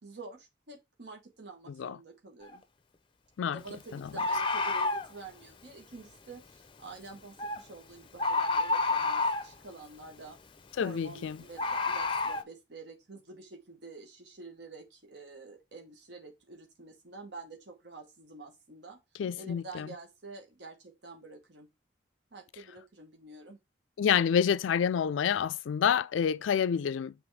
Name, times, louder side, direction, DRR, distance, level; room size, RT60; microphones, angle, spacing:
voice 1, 0.0-2.6 3.4-10.4 10.8-19.0 19.3-21.7 22.3-23.6, right 3 dB, 60° right, 1.2 m, -48 dB
voice 2, 1.7-2.0 3.4-3.6 3.9-4.0 10.8-11.4 19.2-19.9 24.0-27.1, left 7 dB, 85° left, 0.3 m, -28 dB
Bird, 2.4-2.6 4.2-5.1 7.4-7.6 8.2-9.5 11.6-12.4, left 3 dB, 25° left, 0.5 m, -29 dB
6.9 x 3.5 x 4.7 m
head